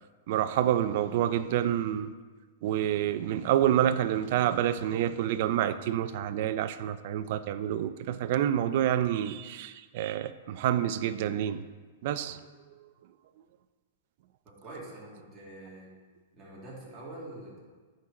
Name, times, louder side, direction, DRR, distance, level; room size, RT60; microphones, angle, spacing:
voice 1, 0.3-2.1 2.6-11.7 12.0-12.4, right 11 dB, 55° right, 0.3 m, -28 dB
voice 2, 14.5-15.9 16.3-17.6, right 2 dB, 20° right, 2.1 m, -45 dB
9.7 x 3.8 x 4.1 m
hypercardioid pair, 145°, 0 cm